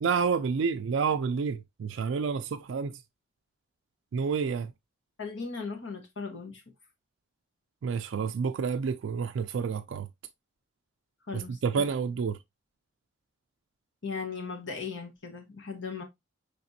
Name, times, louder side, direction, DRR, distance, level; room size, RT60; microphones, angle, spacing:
voice 1, 0.0-3.0 4.1-4.7 7.8-10.1 11.3-12.4, right 5 dB, 70° right, 0.4 m, -29 dB
voice 2, 5.2-6.6 11.3-11.9 14.0-16.0, left 5 dB, 65° left, 1.0 m, -37 dB
5.8 x 3.4 x 2.6 m
head